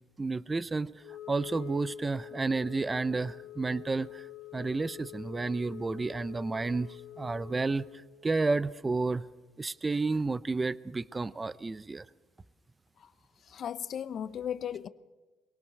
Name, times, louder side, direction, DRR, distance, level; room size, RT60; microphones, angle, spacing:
voice 1, 0.2-0.9 1.3-4.2 4.5-7.8 8.2-9.3 9.6-12.0, right 3 dB, 20° right, 0.5 m, -31 dB
Wind instrument woodwind instrument, 1.0-8.1, left 13 dB, 75° left, 1.5 m, -46 dB
voice 2, 13.5-14.9, left 9 dB, 50° left, 0.8 m, -36 dB
23.0 x 18.0 x 6.6 m
cardioid pair, 95°, 0 cm